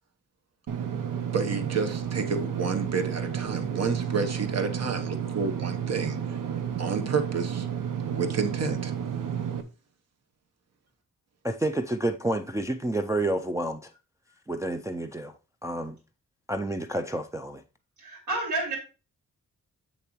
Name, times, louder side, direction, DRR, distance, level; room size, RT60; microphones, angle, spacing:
Engine / Mechanisms, 0.7-9.6, right 8 dB, 90° right, 0.8 m, -31 dB
voice 1, 1.2-6.4 6.8-7.7 8.0-8.9, right 5 dB, 55° right, 1.0 m, -30 dB
voice 2, 11.4-13.9 14.5-15.3 15.6-16.0 16.5-17.6, right 1 dB, 10° right, 0.3 m, -29 dB
voice 3, 18.0-18.8, right 2 dB, 70° right, 3.7 m, -30 dB
7.5 x 6.8 x 3.0 m
wide cardioid pair, 155°, 31 cm